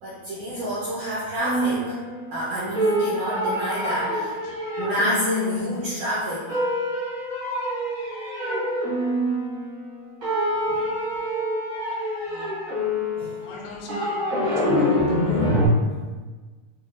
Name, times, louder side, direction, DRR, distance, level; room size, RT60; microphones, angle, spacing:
voice 1, 0.0-2.0 2.3-4.4 4.8-6.6 10.7-10.9 13.2-13.4, equal, 80° right, -8 dB, 1.7 m, -28 dB
sound 1, 1.4-2.5 2.7-6.0 6.5-9.9 10.2-15.7, equal, 60° right, 0.9 m, -26 dB
voice 2, 12.2-12.6 13.4-15.5, left 2 dB, 85° left, -1 dB, 2.2 m, -41 dB
6.1 x 2.2 x 2.4 m, 1.3 s
omnidirectional pair, 4.1 m